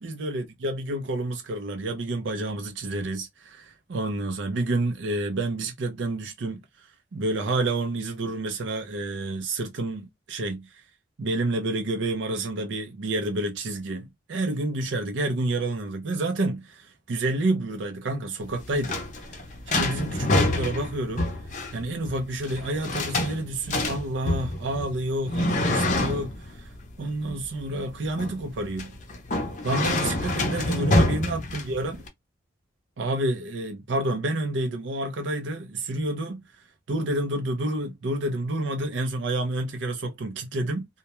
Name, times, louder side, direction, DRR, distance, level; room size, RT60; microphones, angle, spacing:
voice 1, 0.0-10.8 11.2-19.0 19.7-21.3 21.7-26.7 27.0-28.9 29.6-32.0 33.0-36.4 36.9-40.9, right 2 dB, 75° right, 0.5 m, -29 dB
sound 1, 18.4-32.1, left 1 dB, 40° left, 0.6 m, -27 dB
2.2 x 2.1 x 2.9 m
head